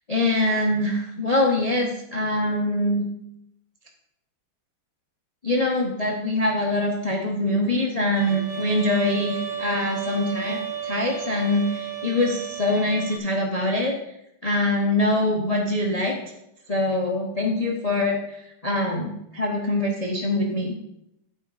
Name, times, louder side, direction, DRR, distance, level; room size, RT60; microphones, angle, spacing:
voice 1, 0.1-3.0 5.4-13.9 14.4-16.2 16.7-20.8, left 1 dB, 75° left, 1 dB, 0.3 m, -24 dB
Bowed string instrument, 8.2-13.2, right 8 dB, 75° right, 0.3 m, -33 dB
12.0 x 4.7 x 4.8 m, 0.81 s
omnidirectional pair, 2.3 m